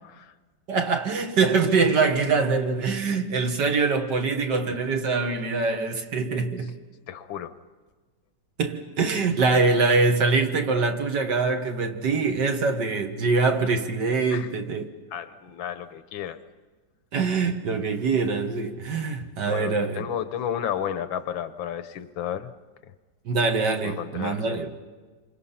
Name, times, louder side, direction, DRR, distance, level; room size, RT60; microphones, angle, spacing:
voice 1, 0.7-6.7 8.6-14.9 17.1-20.1 23.3-24.7, right 4 dB, 60° right, 2.1 m, -24 dB
voice 2, 7.1-7.5 14.3-14.5 15.1-16.4 19.4-22.5 23.8-24.6, left 9 dB, 75° left, 1.7 m, -32 dB
27.5 x 25.5 x 5.8 m
omnidirectional pair, 2.1 m